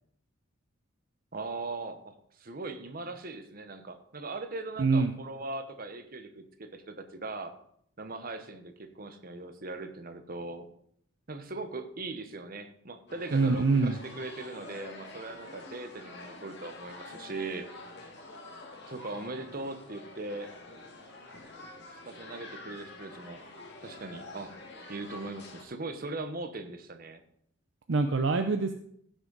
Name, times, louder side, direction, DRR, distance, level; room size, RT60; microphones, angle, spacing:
voice 1, 1.3-7.5 8.0-10.7 11.3-17.7 18.9-20.5 21.9-23.4 23.8-24.5 24.9-27.2, right 2 dB, 45° right, 8 dB, 1.0 m, -40 dB
voice 2, 4.8-5.1 13.3-14.0 27.9-28.7, right 3 dB, 60° right, 7 dB, 0.6 m, -25 dB
sound 1, 13.1-25.6, left 2 dB, 60° left, 2.0 m, -47 dB
15.5 x 6.3 x 4.0 m, 0.67 s
head